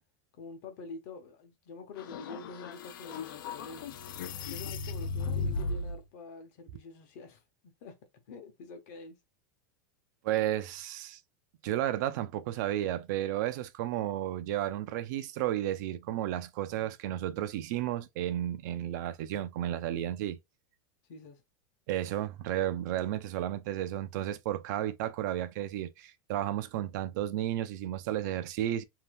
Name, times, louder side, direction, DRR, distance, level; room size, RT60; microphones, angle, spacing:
voice 1, 0.4-4.0 4.5-8.0 8.3-9.2 21.1-21.4, left 4 dB, 50° left, 0.9 m, -47 dB
sound 1, 2.0-6.0, left 4 dB, 75° left, 0.5 m, -36 dB
voice 2, 10.2-11.2 11.6-20.4 21.9-28.8, right 12 dB, 55° right, 0.4 m, -33 dB
2.7 x 2.2 x 3.3 m
supercardioid pair, 160°, 11 cm